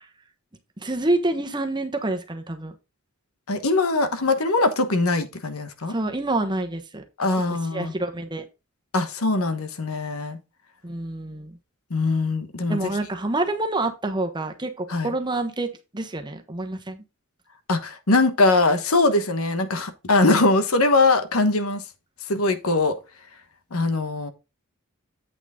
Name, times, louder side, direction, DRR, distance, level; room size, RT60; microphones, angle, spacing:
voice 1, 0.8-2.7 5.9-7.0 7.5-8.4 10.8-11.5 12.7-15.7 15.9-17.0, right 2 dB, 20° right, 1.1 m, -27 dB
voice 2, 3.5-5.9 7.2-7.9 8.9-10.4 11.9-12.9 14.9-15.1 17.7-21.8 22.3-22.9 23.7-24.3, left 2 dB, 90° left, 1.2 m, -21 dB
8.4 x 6.0 x 3.7 m
head